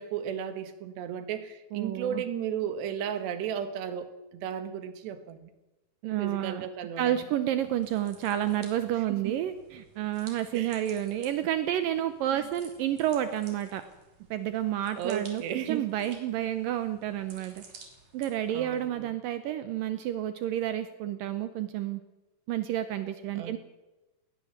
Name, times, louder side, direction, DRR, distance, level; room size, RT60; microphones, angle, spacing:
voice 1, 0.0-5.5 6.2-7.2 9.1-9.4 10.5-10.8 12.3-12.5 15.0-15.9 18.5-19.1 23.4-23.6, right 8 dB, 70° right, 10 dB, 3.5 m, -34 dB
voice 2, 1.7-2.2 6.0-6.7 7.0-13.8 14.3-17.6 18.1-22.0 22.5-23.6, right 12 dB, 90° right, 10 dB, 1.9 m, -30 dB
sound 1, 7.6-18.9, right 4 dB, 45° right, 4.3 m, -54 dB
19.5 x 18.5 x 7.4 m, 1.1 s
omnidirectional pair, 5.3 m